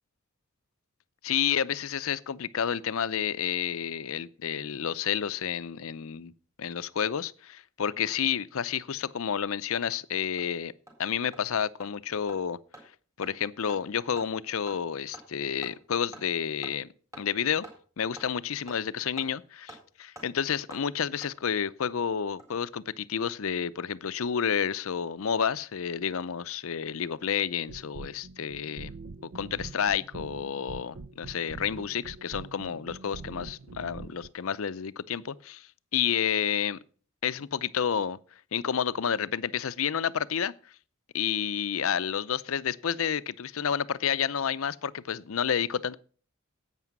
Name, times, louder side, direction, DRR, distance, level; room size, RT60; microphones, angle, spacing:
voice 1, 1.2-6.3 6.6-10.7 11.0-12.6 13.2-16.9 17.2-17.7 18.0-28.9 29.3-35.7 35.9-36.8 37.2-38.2 38.5-40.5 41.1-46.0, left 8 dB, 70° left, 0.5 m, -30 dB
Hammer, 9.4-9.5 9.9-10.0 10.4-10.5 10.9-11.0 11.3-11.4 11.8-11.9 12.3-12.4 12.7-12.8 13.2-13.3 13.7-13.8 14.2-14.3 14.7-14.8 15.1-15.2 15.6-15.7 16.1-16.2 16.6-16.7 17.1-17.2 17.6-17.7 18.2-18.3 18.7-18.8 19.2-19.3 19.7-19.8 20.2-20.3 20.7-20.8 21.2-21.3 22.2-22.6 22.9-23.0, right 1 dB, 15° right, 4.0 m, -46 dB
sound 1, 27.6-34.3, right 4 dB, 65° right, 0.5 m, -44 dB
11.0 x 8.3 x 6.0 m
head